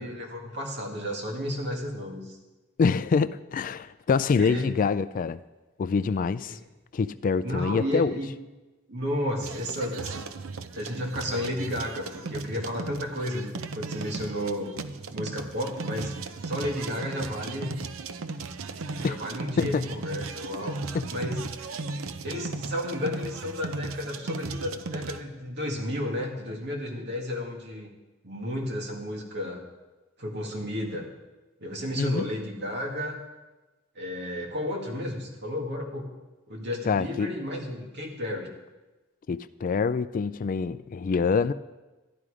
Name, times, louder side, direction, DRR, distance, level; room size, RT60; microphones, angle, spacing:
voice 1, 0.0-2.4 4.4-4.7 6.5-6.6 7.4-8.3 8.9-10.2 10.7-14.7 15.1-16.1 16.4-17.8 18.9-20.8 21.1-21.4 22.2-27.9 28.2-29.6 30.2-31.1 31.6-33.2 34.0-36.1 36.5-38.5, left 1 dB, 55° right, 1 dB, 2.1 m, -32 dB
voice 2, 2.8-5.4 5.8-6.6 6.9-8.2 19.0-19.2 19.6-19.9 20.9-21.1 32.0-32.3 36.9-37.3 39.3-41.5, left 5 dB, 40° left, 15 dB, 0.3 m, -25 dB
sound 1, 9.4-25.2, right 3 dB, 85° right, 0.6 m, -36 dB
12.5 x 11.0 x 5.0 m, 1.2 s
head